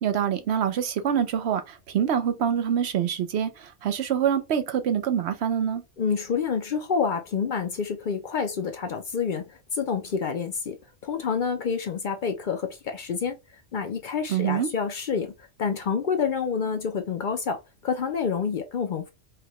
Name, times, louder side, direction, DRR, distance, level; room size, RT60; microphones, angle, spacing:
voice 1, 0.0-5.8 14.3-14.7, right 8 dB, 70° right, 0.9 m, -25 dB
voice 2, 6.0-9.4 9.7-10.8 11.0-13.4 13.7-15.3 15.6-17.6 17.8-19.1, left 6 dB, 55° left, 0.6 m, -28 dB
4.8 x 2.2 x 2.9 m
omnidirectional pair, 1.2 m